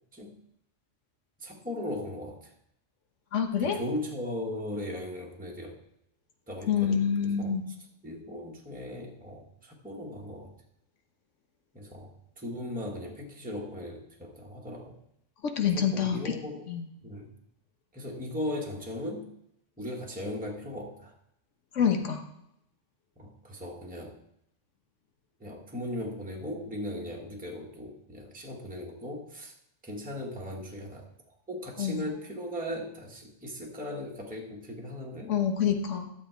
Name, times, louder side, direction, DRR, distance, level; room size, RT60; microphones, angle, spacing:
voice 1, 1.4-2.5 3.6-5.8 6.5-7.5 8.0-10.5 11.7-15.0 15.7-16.7 17.0-17.3 17.9-19.3 19.8-21.1 23.2-24.2 25.4-29.5 29.8-35.3, left 1 dB, 5° right, -1 dB, 1.3 m, -38 dB
voice 2, 3.3-3.8 6.7-7.6 15.4-16.3 16.7-16.8 21.7-22.2 31.8-32.1 35.3-36.1, left 7 dB, 80° left, 5 dB, 1.4 m, -27 dB
11.5 x 7.3 x 4.6 m, 0.78 s
omnidirectional pair, 1.2 m